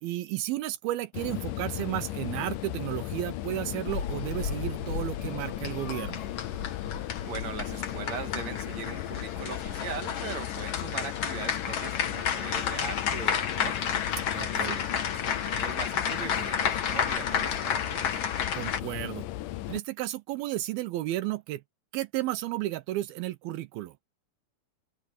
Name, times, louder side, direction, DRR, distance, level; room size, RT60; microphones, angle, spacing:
voice 1, 0.0-6.3 14.3-14.8 18.5-19.3 19.7-21.6 21.9-24.0, right 15 dB, 80° right, 2.5 m, -33 dB
sound 1, 1.1-19.8, left 15 dB, 85° left, 1.8 m, -36 dB
sound 2, 3.9-18.8, left 7 dB, 50° left, 1.9 m, -32 dB
voice 2, 7.2-14.0 14.4-18.2, right 7 dB, 50° right, 2.5 m, -40 dB
omnidirectional pair, 4.6 m